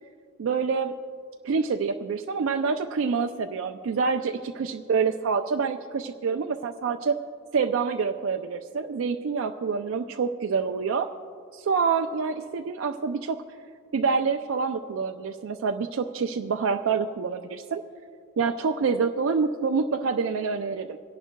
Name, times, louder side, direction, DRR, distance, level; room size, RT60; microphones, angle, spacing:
voice 1, 0.4-1.0 1.4-7.2 7.5-11.1 11.5-13.4 13.9-17.8 18.4-21.0, right 5 dB, 70° right, 5 dB, 0.4 m, -27 dB
26.0 x 11.0 x 2.2 m, 2.3 s
head